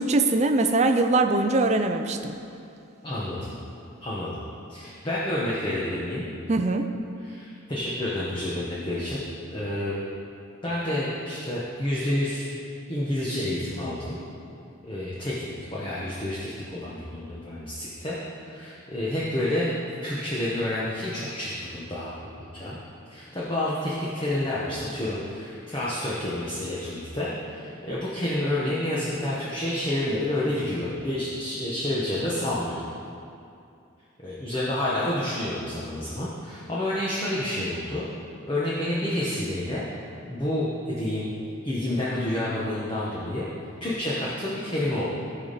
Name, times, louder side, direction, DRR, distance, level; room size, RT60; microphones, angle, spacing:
voice 1, 0.0-2.3 6.5-6.9, right 2 dB, 35° right, 6 dB, 0.5 m, -22 dB
voice 2, 3.0-3.5 4.0-4.4 4.7-6.3 7.2-9.2 9.5-10.0 10.6-12.5 12.9-14.2 14.8-18.2 18.4-19.7 20.0-22.1 22.5-22.8 23.1-32.8 34.2-38.1 38.5-39.9 40.3-41.3 41.6-43.5 43.8-45.0, left 1 dB, 25° left, -7 dB, 1.1 m, -29 dB
16.0 x 5.4 x 4.2 m, 2.6 s
head